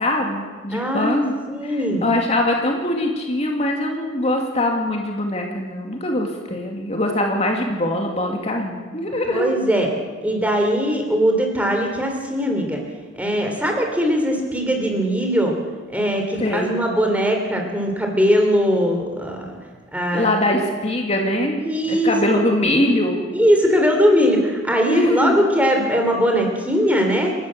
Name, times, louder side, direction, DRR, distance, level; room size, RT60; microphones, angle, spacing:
voice 1, 0.0-9.5 16.4-16.8 20.1-23.2 24.9-25.5, left 1 dB, 35° left, 1 dB, 2.3 m, -22 dB
voice 2, 0.7-1.2 1.6-2.1 9.3-9.9 10.2-12.8 13.2-15.5 15.9-19.5 19.9-20.3 21.6-22.4 23.3-27.3, equal, 5° right, 2 dB, 3.4 m, -20 dB
29.0 x 12.5 x 7.6 m, 1.5 s
head